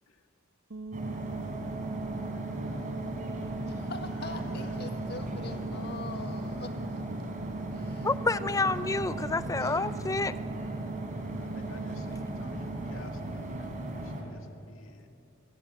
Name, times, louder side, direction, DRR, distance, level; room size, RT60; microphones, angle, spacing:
sound 1, 0.7-13.1, right 3 dB, 90° right, 1.2 m, -41 dB
sound 2, 0.9-14.2, right 1 dB, 40° right, 3.9 m, -37 dB
voice 1, 3.7-7.0 7.7-8.1 9.6-9.8, left 3 dB, 55° left, 7 dB, 1.5 m, -43 dB
voice 2, 8.0-10.3, left 3 dB, 15° left, 15 dB, 0.5 m, -29 dB
voice 3, 11.4-13.7 14.0-14.4 14.7-15.1, left 3 dB, 90° left, 5 dB, 2.0 m, -52 dB
27.5 x 18.0 x 8.4 m, 2.7 s
head